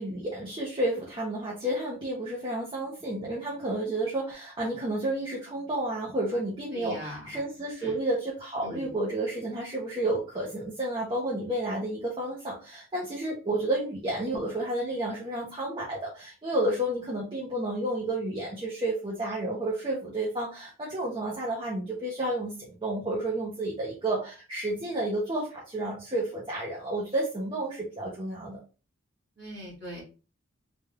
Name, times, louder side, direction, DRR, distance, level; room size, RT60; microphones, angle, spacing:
voice 1, 0.0-28.6, right 1 dB, 25° right, -5 dB, 0.8 m, -31 dB
voice 2, 6.7-7.4 7.8-8.0 8.6-8.9 29.4-30.0, equal, 55° right, -3 dB, 1.8 m, -40 dB
3.5 x 2.5 x 3.4 m, 0.33 s
head